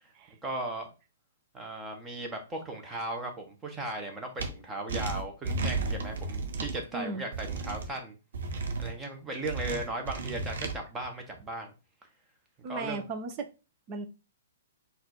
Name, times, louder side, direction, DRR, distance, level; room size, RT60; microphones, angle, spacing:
voice 1, 0.4-0.9 1.5-8.1 8.6-11.7 12.7-13.0, right 2 dB, 15° right, 1.1 m, -37 dB
sound 1, 4.4-4.5 4.9-6.8 7.3-7.9 8.3-8.9 9.4-10.7, right 3 dB, 60° right, 0.9 m, -33 dB
voice 2, 6.9-7.2 12.6-13.5 13.9-14.1, right 3 dB, 30° right, 0.7 m, -36 dB
4.1 x 2.7 x 4.4 m
figure-of-eight pair, 115°, 0 cm